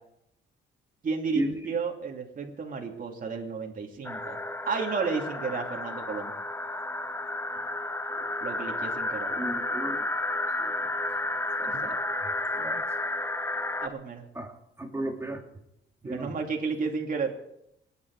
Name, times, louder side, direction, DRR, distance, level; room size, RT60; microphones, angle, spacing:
voice 1, 1.0-4.4 4.7-6.3 8.4-9.3 11.8-12.0 13.8-14.2 16.0-17.3, right 5 dB, 45° right, 1 dB, 2.7 m, -32 dB
sound 1, 4.0-13.9, left 2 dB, 10° left, 1.0 m, -32 dB
voice 2, 9.3-10.1 10.6-10.7 11.6-12.0 12.5-12.8 14.3-14.5 14.8-15.4 16.0-16.3, right 1 dB, 15° right, 2 dB, 2.9 m, -34 dB
27.5 x 9.9 x 4.8 m, 0.80 s
cardioid pair, 105°, 20 cm